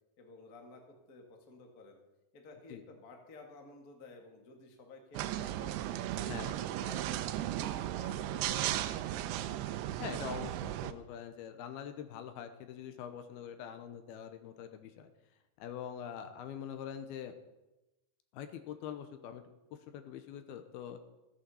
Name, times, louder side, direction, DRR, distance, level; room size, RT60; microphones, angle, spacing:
voice 1, 0.2-2.0 2.3-5.8 6.1-9.0, left 2 dB, 35° left, 2 dB, 1.5 m, -53 dB
sound 1, 5.1-10.9, right 13 dB, 90° right, 2.7 m, -36 dB
voice 2, 10.0-15.1 15.6-17.3 18.3-19.4 19.9-21.0, left 9 dB, 80° left, 9 dB, 2.7 m, -44 dB
15.0 x 8.6 x 7.0 m, 0.98 s
omnidirectional pair, 4.5 m